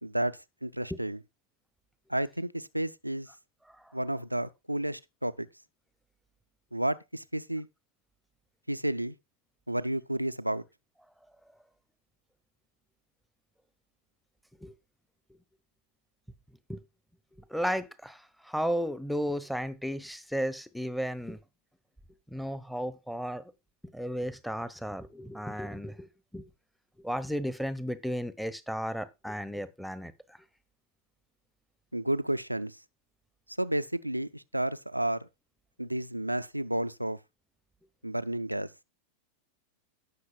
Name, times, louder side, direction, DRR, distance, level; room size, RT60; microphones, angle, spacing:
voice 1, 0.0-1.2 2.1-3.3 3.9-5.5 6.7-7.7 8.7-9.2 9.7-10.6 31.9-32.8 33.6-35.3 35.8-37.2 38.0-38.7, right 1 dB, 85° right, 0.5 m, -31 dB
voice 2, 17.5-21.4 22.3-23.4 23.9-26.5 27.0-30.1, equal, ahead, 1.0 m, -34 dB
17.5 x 6.3 x 2.4 m
figure-of-eight pair, 90°, 0 cm